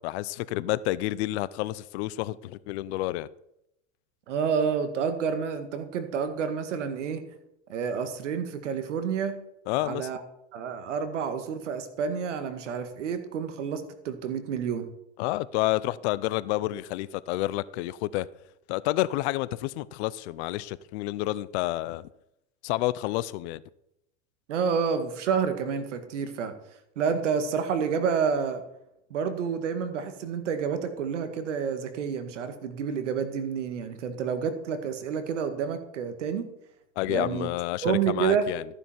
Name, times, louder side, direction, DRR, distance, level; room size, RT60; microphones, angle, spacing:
voice 1, 0.0-3.3 9.7-10.1 15.2-18.3 18.7-22.1 22.6-23.6 37.0-38.6, left 16 dB, 65° left, 19 dB, 0.8 m, -29 dB
voice 2, 4.3-7.2 7.7-9.4 9.8-10.2 10.5-14.9 24.5-26.5 27.0-28.6 29.1-36.5 37.1-37.5 37.8-38.5, right 6 dB, 85° right, 9 dB, 2.0 m, -29 dB
14.5 x 9.9 x 4.5 m, 0.81 s
hypercardioid pair, 100°, 36 cm